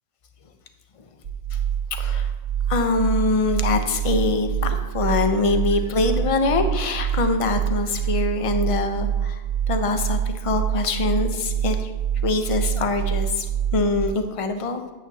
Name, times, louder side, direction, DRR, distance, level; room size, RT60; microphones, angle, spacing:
sound 1, 1.2-14.1, right 9 dB, 75° right, 1.0 m, -26 dB
voice 1, 1.9-2.3 2.7-11.9 12.2-13.5 13.7-14.8, left 3 dB, 35° left, 7 dB, 0.6 m, -24 dB
9.0 x 8.6 x 2.7 m, 1.3 s
omnidirectional pair, 1.1 m